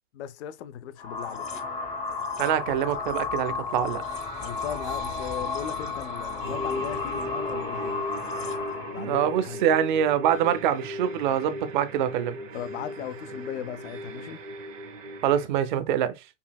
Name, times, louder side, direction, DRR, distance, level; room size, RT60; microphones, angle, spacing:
voice 1, 0.1-1.5 4.3-8.0 8.9-9.6 12.5-14.4, left 10 dB, 60° left, 0.5 m, -37 dB
sound 1, 1.0-9.0, left 4 dB, 20° left, 0.7 m, -33 dB
voice 2, 2.4-4.0 9.0-12.4 15.2-16.1, right 9 dB, 40° right, 0.5 m, -25 dB
sound 2, 3.7-15.5, equal, 80° right, 1.1 m, -38 dB
5.4 x 2.7 x 2.2 m
hypercardioid pair, 150°, 38 cm